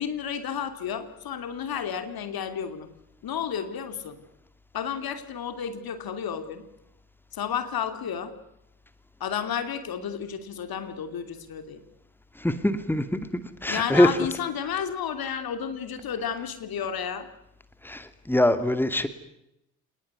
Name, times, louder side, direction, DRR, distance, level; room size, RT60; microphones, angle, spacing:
voice 1, 0.0-2.9 3.2-4.2 4.7-6.7 7.3-8.3 9.2-11.8 13.7-17.3, left 8 dB, 55° left, 9 dB, 3.0 m, -32 dB
voice 2, 12.4-14.1 17.8-19.1, left 1 dB, 5° left, 11 dB, 2.5 m, -23 dB
28.0 x 20.0 x 9.6 m, 0.83 s
figure-of-eight pair, 45°, 43 cm